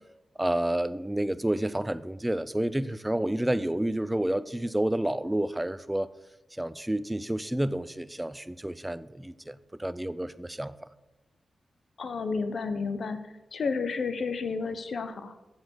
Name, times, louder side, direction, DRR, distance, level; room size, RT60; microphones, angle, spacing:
voice 1, 0.4-6.1 6.6-10.7, right 1 dB, 10° right, 15 dB, 0.5 m, -29 dB
voice 2, 12.0-13.2 13.5-15.3, left 4 dB, 70° left, 10 dB, 0.8 m, -31 dB
7.7 x 7.2 x 6.6 m, 1.0 s
cardioid pair, 65°, 0 cm